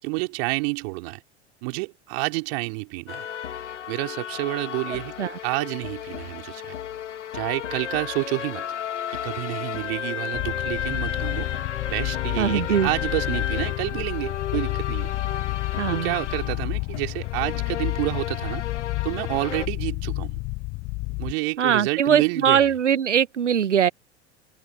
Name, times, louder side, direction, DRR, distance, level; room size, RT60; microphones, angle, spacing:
voice 1, 0.0-1.2 1.6-3.3 3.9-6.7 7.3-8.7 9.1-11.5 11.9-15.1 15.9-18.7 19.0-20.4 21.2-22.7, right 30 dB, 55° right, 3.8 m, -29 dB
sound 1, 3.1-19.7, left 9 dB, 80° left, 1.4 m, -33 dB
sound 2, 10.3-21.3, left 26 dB, 50° left, 4.5 m, -30 dB
voice 2, 12.4-12.9 15.7-16.2 21.6-23.9, right 8 dB, 90° right, 0.8 m, -21 dB
hypercardioid pair, 85°, 35 cm